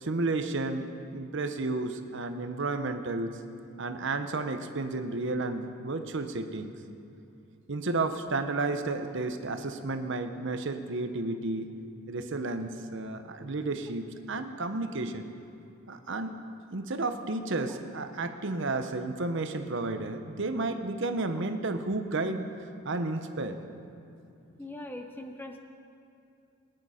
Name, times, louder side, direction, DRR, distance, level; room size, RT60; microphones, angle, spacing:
voice 1, 0.0-3.3 3.8-6.7 7.7-11.7 12.1-15.3 15.9-16.4 16.7-22.5 22.8-23.6, right 2 dB, 60° right, 8 dB, 0.8 m, -32 dB
voice 2, 24.6-25.6, left 1 dB, 10° left, 5 dB, 0.6 m, -41 dB
18.5 x 10.0 x 5.0 m, 2.6 s
head